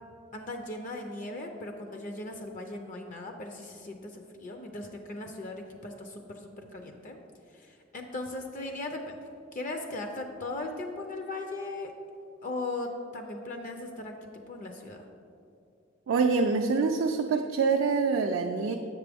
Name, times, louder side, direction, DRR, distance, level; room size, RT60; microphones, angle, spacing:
voice 1, 0.3-7.2 7.5-9.2 9.5-11.9 12.4-15.1, left 2 dB, 40° left, 4 dB, 0.4 m, -38 dB
voice 2, 16.1-18.7, right 4 dB, 65° right, 3 dB, 0.3 m, -25 dB
7.4 x 5.9 x 3.4 m, 2.6 s
head